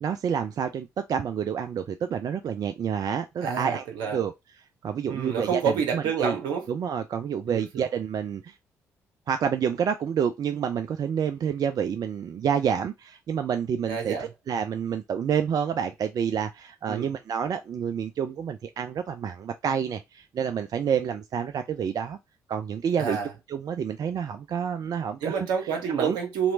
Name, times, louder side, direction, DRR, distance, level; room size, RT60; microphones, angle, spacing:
voice 1, 0.0-3.8 4.1-4.3 4.8-6.4 6.7-8.5 9.3-22.2 22.5-23.2 23.5-25.4 26.0-26.2, right 7 dB, 50° right, 0.4 m, -28 dB
voice 2, 3.4-4.2 5.0-6.7 7.5-7.8 13.9-14.3 16.9-17.1 23.0-23.3 25.2-26.5, right 6 dB, 70° right, 1.0 m, -28 dB
3.1 x 2.9 x 2.7 m
figure-of-eight pair, 40°, 8 cm